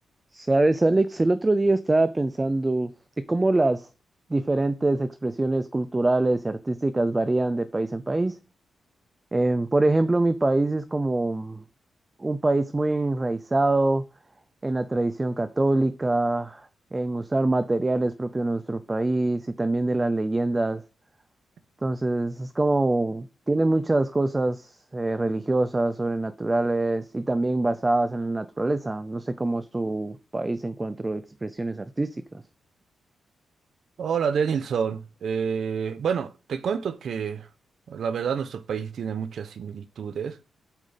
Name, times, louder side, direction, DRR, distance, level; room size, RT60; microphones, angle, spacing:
voice 1, 0.3-2.9 3.3-3.9 4.3-8.4 9.3-11.6 12.2-14.0 14.6-20.8 21.8-32.4, right 2 dB, 15° right, 0.5 m, -24 dB
voice 2, 34.0-37.5 37.9-40.4, right 7 dB, 60° right, 0.9 m, -28 dB
8.5 x 7.5 x 5.7 m
wide cardioid pair, 180°, 0 cm